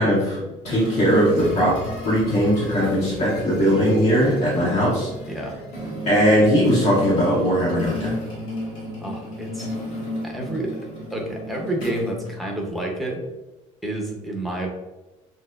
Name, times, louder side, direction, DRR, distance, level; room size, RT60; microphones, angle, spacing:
voice 1, 0.0-1.8 2.0-5.1 6.0-8.1, equal, 55° left, -8 dB, 1.3 m, -19 dB
sound 1, 0.7-12.9, equal, 75° left, 1.4 m, -33 dB
voice 2, 5.3-5.6 9.0-9.7 10.2-13.3 13.8-14.7, right 1 dB, ahead, -1 dB, 0.5 m, -29 dB
6.1 x 2.2 x 2.2 m, 1.1 s
cardioid pair, 175°, 14 cm